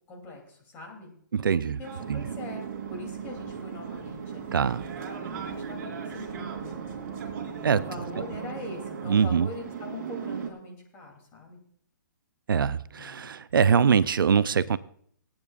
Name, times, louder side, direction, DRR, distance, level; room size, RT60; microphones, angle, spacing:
voice 1, 0.1-1.1 1.6-2.6 2.9-6.8 7.4-11.6 12.9-13.3, left 2 dB, 20° left, 1 dB, 3.0 m, -43 dB
voice 2, 1.3-1.8 2.1-2.3 4.5-4.8 7.6-7.8 9.1-9.5 12.5-14.8, right 6 dB, 85° right, 16 dB, 0.5 m, -23 dB
sound 1, 1.8-10.5, right 7 dB, 45° right, 3.0 m, -37 dB
26.5 x 8.9 x 2.5 m, 0.62 s
hypercardioid pair, 150°, 11 cm